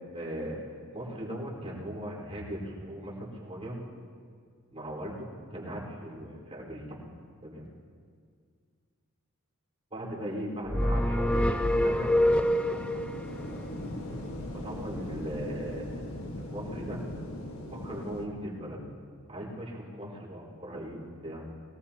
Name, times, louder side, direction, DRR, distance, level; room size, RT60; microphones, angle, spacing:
voice 1, 0.1-3.7 4.7-7.0 7.4-7.7 9.9-13.0 14.6-15.9 16.1-17.0 17.8-18.8 19.3-21.6, equal, 30° right, -5 dB, 4.5 m, -39 dB
sound 1, 10.7-13.1, left 1 dB, 5° left, 0.3 m, -25 dB
sound 2, 11.3-18.3, left 1 dB, 70° left, 1.6 m, -39 dB
22.5 x 19.0 x 2.9 m, 2.1 s
head